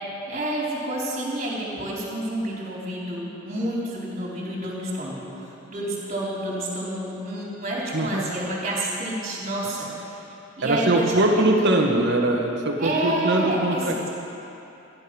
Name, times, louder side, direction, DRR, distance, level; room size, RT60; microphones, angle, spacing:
voice 1, 0.3-10.3 10.6-11.5 12.8-14.1, right 1 dB, 35° right, -5 dB, 3.8 m, -29 dB
voice 2, 7.9-8.2 10.6-14.1, right 1 dB, 55° right, 2 dB, 1.5 m, -22 dB
15.5 x 11.0 x 6.1 m, 2.9 s
head